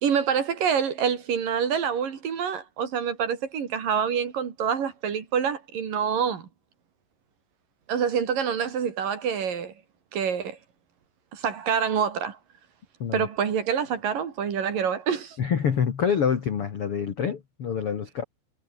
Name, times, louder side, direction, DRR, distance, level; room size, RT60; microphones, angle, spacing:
voice 1, 0.0-6.5 7.9-9.7 10.1-10.6 11.3-12.4 13.1-15.4, right 7 dB, 50° right, 3.9 m, -26 dB
voice 2, 15.4-18.2, left 7 dB, 60° left, 1.4 m, -26 dB
omnidirectional pair, 5.6 m